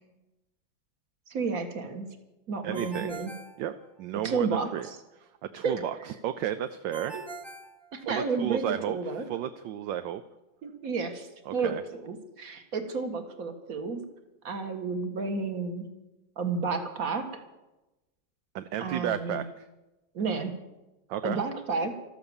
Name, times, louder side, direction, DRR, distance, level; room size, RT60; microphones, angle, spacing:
voice 1, 1.3-2.1 2.5-3.3 4.2-4.7 5.6-5.8 7.1-7.2 7.9-9.3 10.6-14.0 14.4-15.9 16.4-17.4 18.8-19.4 20.2-20.5 21.2-22.0, right 4 dB, 45° right, 6 dB, 2.0 m, -31 dB
voice 2, 2.6-3.1 3.6-3.7 4.0-4.9 5.1-7.2 8.0-10.2 11.5-11.8 18.5-19.7 21.1-21.4, right 11 dB, 75° right, 11 dB, 1.3 m, -33 dB
Ringtone, 2.7-4.4 6.9-8.5, right 4 dB, 20° right, 0.7 m, -44 dB
13.5 x 13.5 x 7.1 m, 1.0 s
omnidirectional pair, 2.2 m